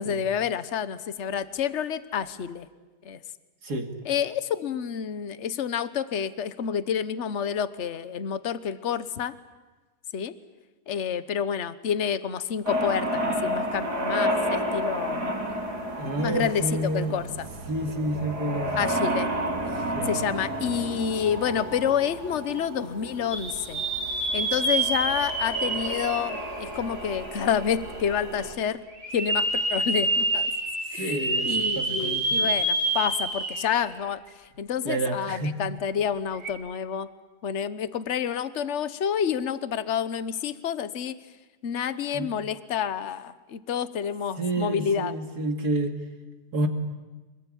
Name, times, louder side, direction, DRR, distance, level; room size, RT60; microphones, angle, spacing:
voice 1, 0.0-2.7 3.0-3.2 4.0-9.3 10.1-10.3 10.9-15.4 16.2-16.6 16.9-17.5 18.8-19.3 20.0-23.8 24.3-28.8 29.1-30.5 30.9-31.2 31.4-34.2 34.6-37.1 37.4-41.2 41.6-45.1, left 8 dB, 50° left, 14 dB, 1.3 m, -29 dB
sound 1, 12.7-28.5, equal, 90° right, 4.5 m, -31 dB
voice 2, 16.0-17.2 17.7-18.8 19.9-20.3 30.9-32.5 34.8-35.6 42.1-42.3 44.4-46.0 46.5-46.7, right 2 dB, 75° right, 5 dB, 2.8 m, -29 dB
sound 2, 23.3-27.3 27.8-27.9 29.0-33.9 34.3-34.4 36.3-36.5, right 2 dB, 60° right, 4.4 m, -27 dB
26.0 x 22.5 x 9.9 m, 1.2 s
omnidirectional pair, 1.7 m